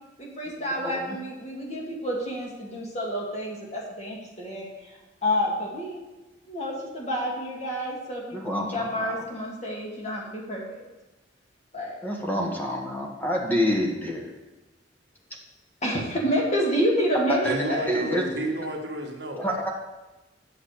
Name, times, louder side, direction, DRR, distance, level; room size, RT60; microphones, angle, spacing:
voice 1, 0.2-4.7 5.2-6.0 6.5-10.8 11.7-12.0 13.5-13.8 15.8-18.3, equal, 35° left, -3 dB, 2.4 m, -29 dB
voice 2, 0.8-1.2 8.3-9.2 12.0-14.2 17.3-17.6 17.9-18.2 19.4-19.7, equal, 10° left, -1 dB, 1.5 m, -27 dB
voice 3, 17.4-19.4, right 1 dB, 65° right, 1 dB, 1.5 m, -31 dB
8.7 x 6.5 x 6.6 m, 1.1 s
head